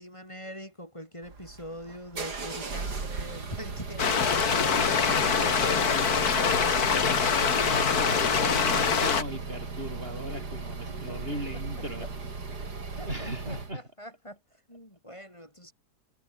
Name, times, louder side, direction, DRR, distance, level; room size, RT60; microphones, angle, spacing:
voice 1, 0.0-7.0 10.9-11.2 12.0-12.1 12.7-14.4 14.7-15.7, equal, 15° left, 7.9 m, -44 dB
sound 1, 1.2-13.7, right 4 dB, 70° right, 3.9 m, -37 dB
sound 2, 4.0-9.2, left 6 dB, 65° left, 2.4 m, -24 dB
voice 2, 7.4-12.1 13.1-13.8, right 1 dB, 35° right, 7.6 m, -37 dB
omnidirectional pair, 1.8 m